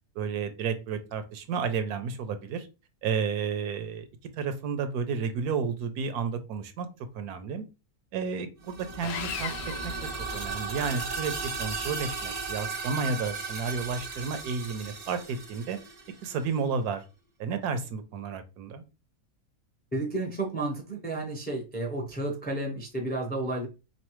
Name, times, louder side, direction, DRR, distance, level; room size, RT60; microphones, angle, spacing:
voice 1, 0.1-2.7 3.0-4.1 4.4-6.9 7.1-7.6 8.1-9.5 9.8-9.9 10.3-11.3 11.6-15.8 16.2-17.0 17.4-18.8, right 5 dB, 80° right, 1.1 m, -31 dB
sound 1, 8.6-16.4, right 4 dB, 45° right, 0.5 m, -36 dB
Sawing, 9.0-10.9, left 8 dB, 70° left, 0.6 m, -38 dB
voice 2, 19.9-23.7, right 2 dB, 10° left, 0.5 m, -32 dB
3.9 x 3.2 x 3.0 m
omnidirectional pair, 1.6 m